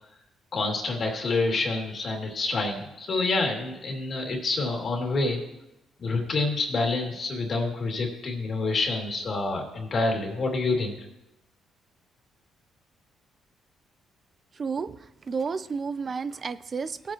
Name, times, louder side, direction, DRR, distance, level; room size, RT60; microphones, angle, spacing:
voice 1, 0.5-5.4 6.0-10.9, left 3 dB, 50° left, 1 dB, 2.4 m, -27 dB
voice 2, 14.6-15.0 15.3-17.1, right 5 dB, 40° right, 15 dB, 0.5 m, -31 dB
16.5 x 8.4 x 3.0 m, 0.90 s
cardioid pair, 90°, 0 cm